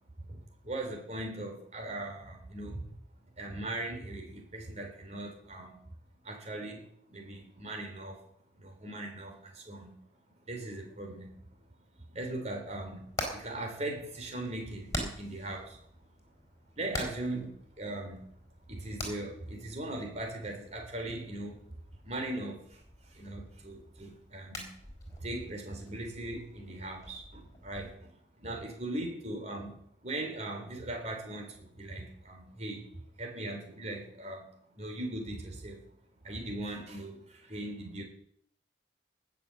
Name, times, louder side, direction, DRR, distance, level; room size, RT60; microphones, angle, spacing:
voice 1, 0.3-2.9 3.4-5.8 6.2-8.2 8.6-10.0 10.5-11.4 12.1-15.8 16.8-18.3 18.7-21.6 22.0-24.7 25.2-29.8 30.0-32.9 33.2-34.5 34.8-35.8 36.2-38.0, right 1 dB, 35° right, 2 dB, 3.8 m, -39 dB
Hammer, 12.7-27.9, left 1 dB, 20° left, 4.2 m, -45 dB
19.0 x 6.8 x 7.7 m, 0.67 s
head